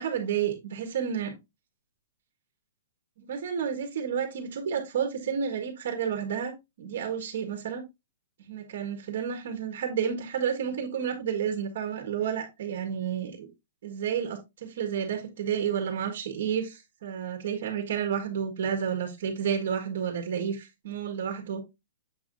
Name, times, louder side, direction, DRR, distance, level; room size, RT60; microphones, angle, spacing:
voice 1, 0.0-1.3 3.2-7.8 8.5-13.5 13.8-21.6, right 8 dB, 50° right, 1.6 m, -31 dB
7.4 x 5.8 x 2.6 m
hypercardioid pair, 170°, 0 cm